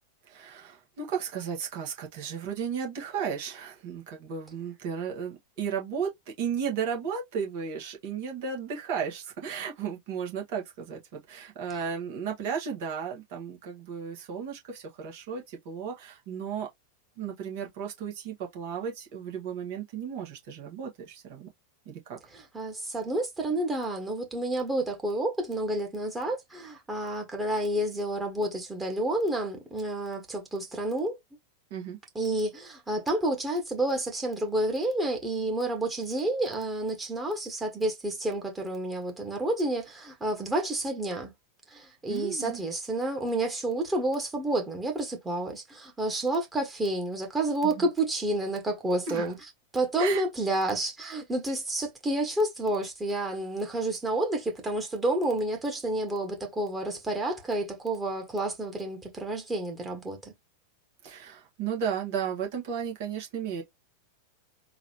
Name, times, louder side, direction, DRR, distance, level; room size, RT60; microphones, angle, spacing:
voice 1, 0.3-6.1 6.4-16.7 17.2-21.5 21.8-22.2 31.7-32.0 42.1-42.6 47.6-47.9 49.1-49.3 50.0-50.2 61.0-63.6, right 7 dB, 50° right, 1.7 m, -34 dB
voice 2, 22.3-31.2 32.1-41.3 41.7-49.3 49.7-60.3, right 1 dB, 10° right, 1.6 m, -30 dB
3.9 x 2.7 x 3.0 m
figure-of-eight pair, 90°, 0 cm